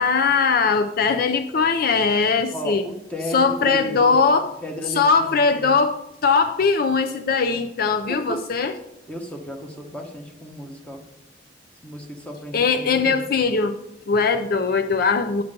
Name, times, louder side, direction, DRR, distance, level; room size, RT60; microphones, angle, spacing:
voice 1, 0.0-2.8 3.3-4.5 5.0-8.7 12.5-13.8 14.1-15.4, left 5 dB, 55° left, 9 dB, 0.5 m, -20 dB
voice 2, 2.5-4.2 4.6-5.7 8.1-8.4 9.1-11.0 11.8-13.2, equal, 10° left, 2 dB, 1.4 m, -34 dB
9.3 x 6.8 x 5.2 m, 0.88 s
head